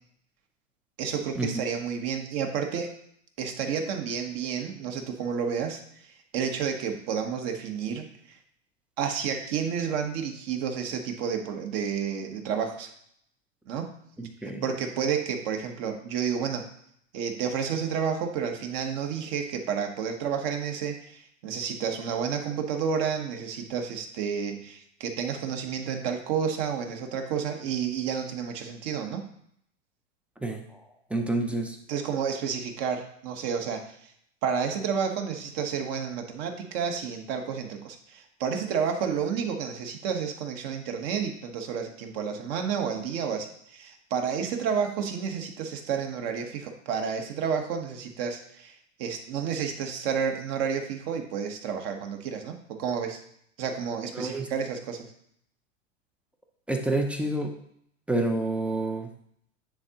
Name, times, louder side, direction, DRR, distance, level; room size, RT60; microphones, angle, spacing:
voice 1, 1.0-2.9 3.4-8.4 9.0-12.9 13.7-13.9 14.4-16.7 17.1-29.3 31.9-34.1 34.4-53.2 53.6-55.1, right 7 dB, 50° right, 4 dB, 1.1 m, -30 dB
voice 2, 14.2-14.7 30.4-30.8 31.1-31.8 54.1-54.5 56.7-57.6 58.1-59.1, right 2 dB, 5° right, 4 dB, 0.4 m, -28 dB
9.6 x 3.7 x 2.8 m, 0.69 s
hypercardioid pair, 120°, 38 cm